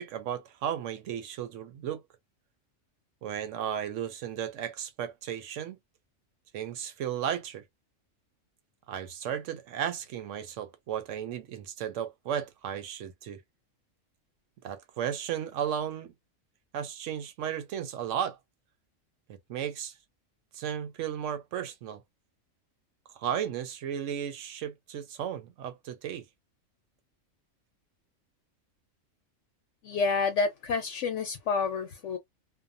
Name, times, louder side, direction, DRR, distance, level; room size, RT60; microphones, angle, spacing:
voice 1, 0.0-2.0 3.2-5.8 6.5-7.6 8.9-13.4 14.6-16.1 16.7-18.4 19.3-19.9 20.5-22.0 23.2-26.2, right 9 dB, 70° right, 0.9 m, -34 dB
voice 2, 29.8-32.2, left 4 dB, 70° left, 0.9 m, -29 dB
2.6 x 2.2 x 2.5 m
omnidirectional pair, 1.4 m